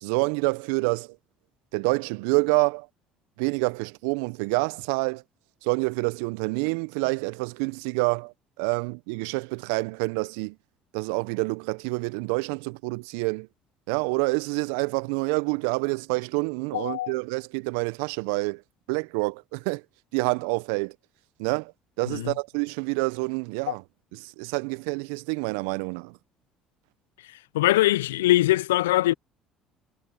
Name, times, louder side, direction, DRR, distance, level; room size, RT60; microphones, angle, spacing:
voice 1, 0.0-1.2 1.7-2.9 3.4-5.2 5.6-10.6 10.9-13.5 13.9-18.6 18.9-19.8 20.1-20.9 21.4-21.7 22.0-23.8 24.1-26.2, right 30 dB, 70° right, 1.0 m, -27 dB
voice 2, 16.7-17.1 22.1-22.3 23.7-23.8 27.5-29.1, left 16 dB, 80° left, 0.7 m, -22 dB
hypercardioid pair, 55°, 0 cm